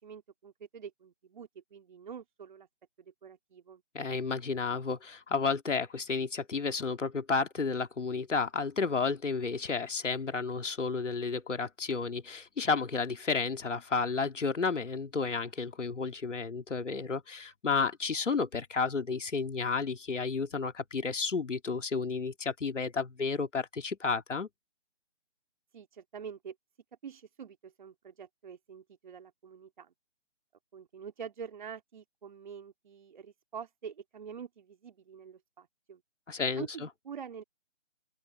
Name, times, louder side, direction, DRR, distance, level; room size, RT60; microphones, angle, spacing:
voice 1, 0.0-2.7 3.0-3.8 25.7-26.5 27.0-29.9 30.7-36.0 36.6-37.4, right 7 dB, 40° right, 2.9 m, -46 dB
voice 2, 3.9-24.5 36.3-36.7, left 4 dB, 80° left, 2.4 m, -32 dB
open air
hypercardioid pair, 165°, 36 cm